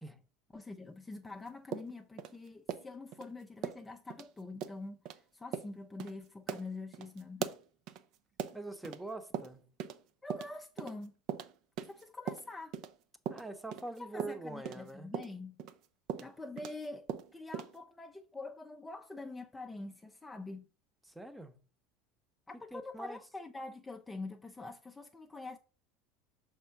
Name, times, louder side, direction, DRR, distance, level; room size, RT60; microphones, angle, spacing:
voice 1, 0.5-7.5 10.2-11.1 11.8-12.8 14.0-15.6 16.2-20.7 22.5-25.6, left 3 dB, 15° left, 0.6 m, -45 dB
sound 1, 1.7-3.3 3.6-4.3 4.6-4.8 5.0-5.2 5.5-5.7 6.0-6.1 6.5-9.0 9.3-10.0 10.3-12.9 13.3-16.8 17.1-17.8, right 8 dB, 55° right, 0.6 m, -40 dB
voice 2, 8.5-9.6 13.3-15.1 21.1-21.5 22.7-23.2, right 2 dB, 10° right, 1.0 m, -44 dB
6.0 x 3.6 x 5.8 m
figure-of-eight pair, 75°, 0 cm